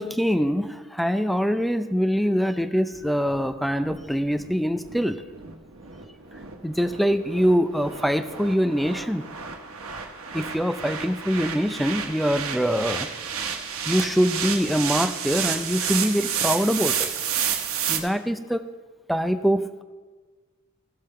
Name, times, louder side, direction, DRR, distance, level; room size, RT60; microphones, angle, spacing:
voice 1, 0.0-5.2 6.6-9.3 10.3-13.1 13.9-17.1 17.9-18.6 19.1-19.8, equal, ahead, 9 dB, 0.4 m, -24 dB
sound 1, 2.9-18.0, right 7 dB, 75° right, 1.1 m, -31 dB
16.0 x 5.5 x 4.4 m, 1.4 s
head